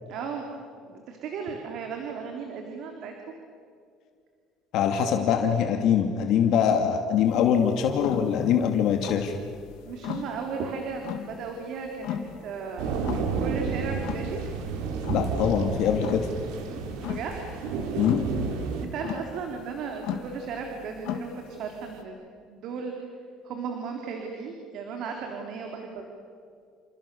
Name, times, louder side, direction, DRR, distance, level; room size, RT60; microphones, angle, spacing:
voice 1, 0.1-0.4 0.8-3.1 9.8-13.0 13.4-14.4 17.1-17.4 18.8-22.2 22.5-22.9 23.4-26.0, right 5 dB, 55° right, 2 dB, 3.6 m, -35 dB
voice 2, 4.7-9.4 15.1-16.3 18.0-18.3, left 8 dB, 60° left, 4 dB, 2.4 m, -23 dB
sound 1, 7.2-22.0, left 9 dB, 80° left, 3.1 m, -39 dB
sound 2, 12.8-18.9, right 5 dB, 90° right, 4.0 m, -31 dB
30.0 x 28.0 x 7.1 m, 2.3 s
cardioid pair, 150°, 0 cm